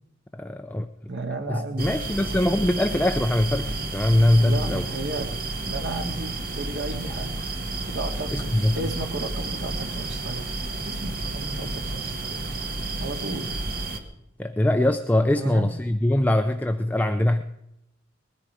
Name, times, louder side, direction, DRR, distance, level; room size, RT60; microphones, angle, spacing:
voice 1, 0.3-0.9 1.5-4.9 8.3-8.8 14.4-17.4, left 1 dB, 10° left, 7 dB, 0.5 m, -22 dB
voice 2, 1.1-1.9 4.4-5.4 5.6-7.3 7.8-8.5 8.7-10.4 10.8-12.4 13.0-13.4 15.3-15.7, right 2 dB, 75° right, 4 dB, 2.2 m, -33 dB
sound 1, 1.8-14.0, right 2 dB, 50° right, 1.7 m, -31 dB
20.5 x 13.5 x 4.9 m, 0.87 s
head